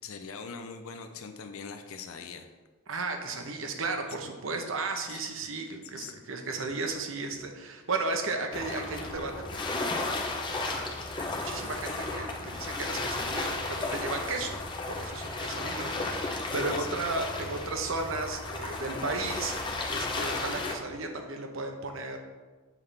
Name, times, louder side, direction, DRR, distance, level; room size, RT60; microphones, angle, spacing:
voice 1, 0.0-2.5 5.1-5.2 5.8-6.1 16.7-16.9, left 5 dB, 80° left, 6 dB, 0.5 m, -42 dB
voice 2, 2.9-10.1 10.5-10.8 11.2-14.5 14.9-22.2, right 3 dB, 70° right, 4 dB, 0.9 m, -35 dB
sound 1, 8.5-20.8, left 2 dB, 20° left, 0.6 m, -34 dB
7.3 x 5.7 x 3.4 m, 1.3 s
head